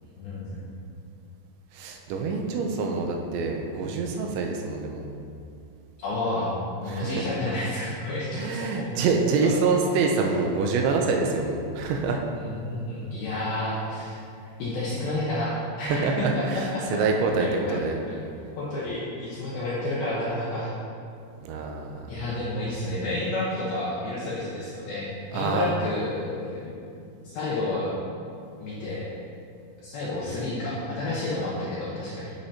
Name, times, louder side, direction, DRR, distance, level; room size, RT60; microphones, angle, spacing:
voice 1, 0.2-0.7 6.0-6.5 6.8-8.9 9.4-9.7 12.4-14.2 14.6-16.9 17.4-17.8 18.1-18.3 18.6-20.7 22.1-26.7 27.2-27.9 28.6-29.1 29.8-32.3, left 2 dB, 70° left, -7 dB, 2.4 m, -30 dB
voice 2, 1.7-5.1 6.9-7.2 8.4-12.2 15.8-17.5 17.7-18.0 21.4-22.1 25.3-25.7, right 4 dB, 80° right, 2 dB, 2.9 m, -26 dB
11.0 x 6.6 x 2.8 m, 2.5 s
omnidirectional pair, 5.3 m